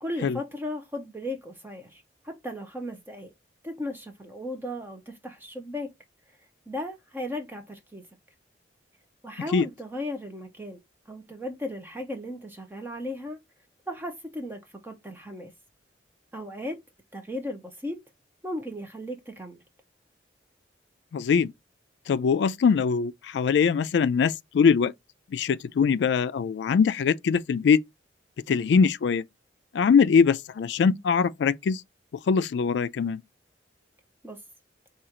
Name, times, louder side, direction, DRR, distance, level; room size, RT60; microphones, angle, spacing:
voice 1, 0.0-3.3 3.6-5.9 6.7-8.0 9.2-10.8 11.1-13.4 13.9-15.5 16.3-16.8 17.1-18.0 18.4-19.6 34.2-34.4, left 1 dB, 10° right, 0.6 m, -36 dB
voice 2, 21.1-21.5 22.1-24.9 25.3-27.8 28.5-29.2 29.7-31.8 32.3-33.2, left 6 dB, 70° left, 0.3 m, -22 dB
4.9 x 2.4 x 2.8 m
head